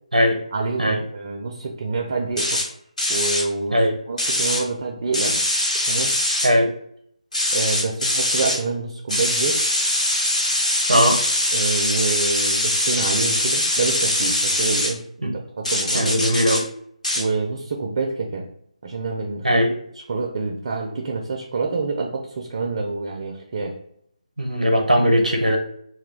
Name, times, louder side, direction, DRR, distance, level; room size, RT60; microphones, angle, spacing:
voice 1, 0.5-2.6 3.1-5.4 5.9-6.1 7.5-9.6 11.5-16.1 17.1-18.5 18.8-19.6 20.1-23.7, right 3 dB, 40° right, 1 dB, 0.4 m, -27 dB
sound 1, 2.4-2.7 3.0-3.4 4.2-4.6 5.1-6.5 7.3-8.6 9.1-14.9 15.7-16.6 17.0-17.2, left 1 dB, 75° left, 1.1 m, -22 dB
voice 2, 10.9-11.2 15.2-15.3 15.9-16.7 19.4-19.7 24.4-25.6, equal, 90° right, 3 dB, 0.6 m, -19 dB
2.2 x 2.1 x 3.1 m, 0.69 s
figure-of-eight pair, 150°, 4 cm